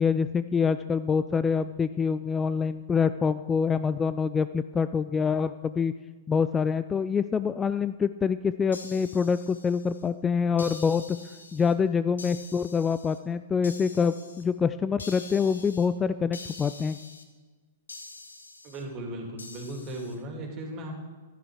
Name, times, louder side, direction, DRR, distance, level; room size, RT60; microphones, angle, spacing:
voice 1, 0.0-5.9 6.3-11.2 11.5-17.0, left 6 dB, 15° left, 13 dB, 0.3 m, -26 dB
sound 1, 8.7-10.1 10.6-11.7 12.2-13.2 13.6-14.4 15.0-15.9 16.3-17.2 17.9-18.8 19.4-20.2, left 3 dB, 80° left, 1.3 m, -45 dB
voice 2, 18.6-20.9, right 1 dB, 35° right, 2 dB, 2.9 m, -37 dB
11.5 x 11.0 x 4.8 m, 1.4 s
figure-of-eight pair, 110°, 0 cm